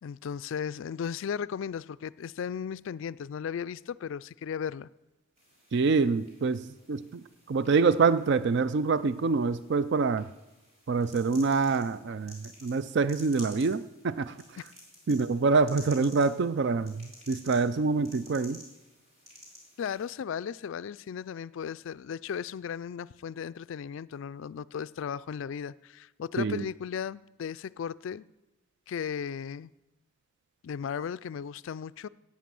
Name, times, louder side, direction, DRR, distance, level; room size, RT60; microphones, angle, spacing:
voice 1, 0.0-4.9 19.8-28.3 28.9-29.7 30.6-32.1, left 7 dB, 60° left, 0.3 m, -36 dB
sound 1, 5.4-20.1, equal, 30° right, 3.5 m, -53 dB
voice 2, 5.7-10.3 10.9-14.4 15.1-18.6 26.4-26.7, right 4 dB, 55° right, 0.4 m, -26 dB
11.5 x 8.6 x 7.6 m
head